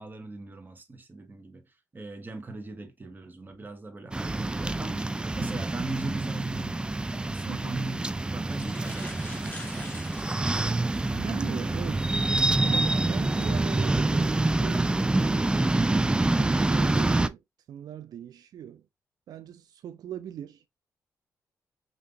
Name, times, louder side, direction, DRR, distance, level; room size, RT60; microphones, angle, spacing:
voice 1, 0.0-6.8 7.2-10.1, right 3 dB, 30° right, 1.3 m, -39 dB
sound 1, 4.1-17.3, right 2 dB, 15° right, 0.4 m, -26 dB
sound 2, 7.1-7.2 8.0-8.1 8.4-11.2 11.8-11.9 13.7-13.9 14.5-14.8, left 2 dB, 20° left, 1.6 m, -45 dB
voice 2, 7.5-7.8 11.1-12.1 12.6-14.8 16.4-17.4 17.7-18.9 19.3-20.6, right 10 dB, 80° right, 0.4 m, -40 dB
5.2 x 2.8 x 2.7 m
cardioid pair, 80°, 7 cm